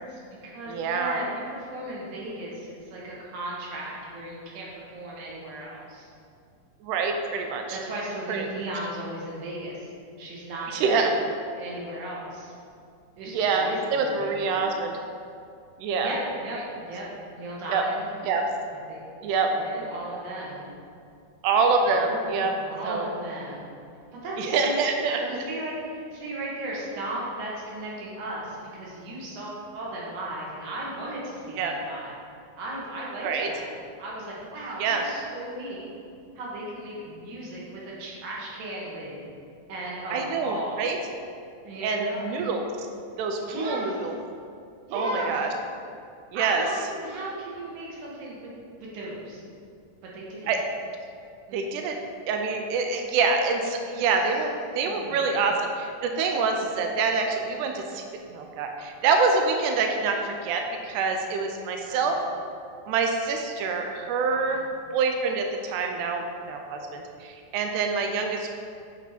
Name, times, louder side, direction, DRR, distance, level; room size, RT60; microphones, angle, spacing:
voice 1, 0.0-6.1 7.7-9.9 10.2-11.1 11.5-12.5 13.2-14.5 16.0-17.1 17.3-18.1 18.9-20.7 21.9-23.7 24.2-32.2 32.6-33.7 34.0-35.9 36.4-39.2 39.7-40.9 41.6-42.6 43.4-44.1 44.9-45.4 46.3-48.5 48.8-49.4 50.0-50.5 51.5-51.6 54.8-55.3 61.9-62.2 64.3-64.7, right 1 dB, 65° right, -4 dB, 2.4 m, -36 dB
voice 2, 0.7-1.2 6.8-7.8 8.3-8.5 10.7-11.1 13.3-15.0 15.8-16.1 17.7-17.8 18.2-18.4 19.2-19.5 21.4-22.5 22.9-23.1 24.4-25.2 31.6-31.7 33.2-33.5 34.8-35.0 40.1-41.0 41.8-42.7 43.2-44.1 44.9-45.5 46.3-46.7 50.5-50.6 51.5-52.0 52.3-58.0 58.3-62.2 62.9-64.6 64.9-68.6, right 4 dB, 85° right, 3 dB, 1.7 m, -26 dB
8.0 x 4.2 x 4.3 m, 2.4 s
omnidirectional pair, 4.1 m